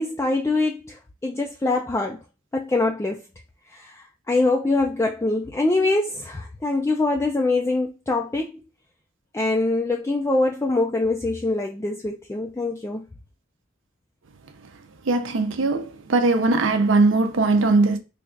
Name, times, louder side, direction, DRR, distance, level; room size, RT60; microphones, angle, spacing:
voice 1, 0.0-2.2 2.5-3.2 3.7-8.6 9.3-13.0, left 2 dB, 15° left, 0.3 m, -24 dB
voice 2, 15.1-18.0, right 3 dB, 70° right, 0.5 m, -20 dB
3.3 x 2.4 x 3.7 m
head